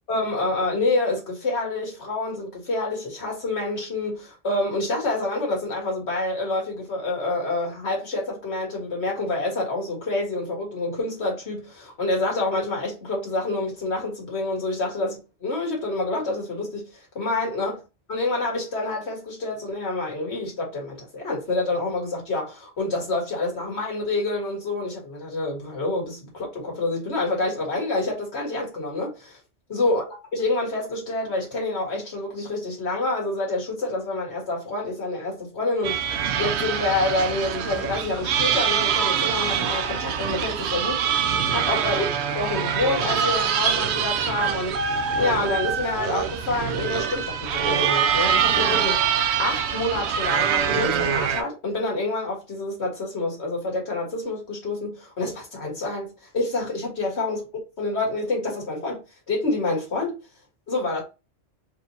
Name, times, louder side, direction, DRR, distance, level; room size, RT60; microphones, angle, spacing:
voice 1, 0.0-17.8 18.1-29.4 29.7-36.0 36.4-41.2 41.5-42.1 42.4-44.8 45.2-49.0 49.4-57.4 57.8-59.0 59.3-60.2 60.7-61.0, left 2 dB, 65° left, 1.8 m, -27 dB
sound 1, 35.8-51.4, right 8 dB, 70° right, 0.8 m, -24 dB
4.5 x 3.0 x 2.7 m
omnidirectional pair, 1.2 m